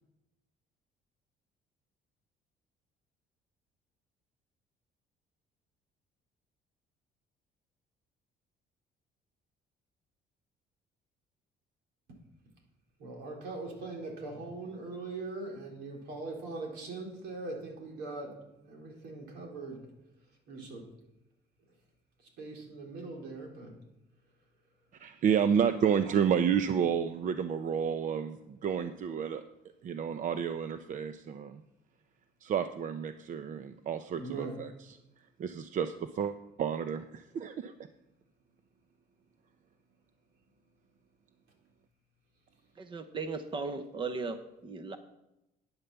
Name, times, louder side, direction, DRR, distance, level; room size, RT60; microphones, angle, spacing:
voice 1, 13.0-19.9 20.5-20.9 22.4-23.8 34.2-34.6, right 3 dB, 85° right, 1 dB, 3.7 m, -41 dB
voice 2, 25.0-29.4 29.8-31.6 32.4-34.7 35.4-36.3 36.6-37.7, right 7 dB, 50° right, 9 dB, 0.7 m, -30 dB
voice 3, 42.8-44.4 44.6-45.0, right 4 dB, 30° right, 9 dB, 0.9 m, -36 dB
9.8 x 8.8 x 7.0 m, 0.92 s
cardioid pair, 110°, 17 cm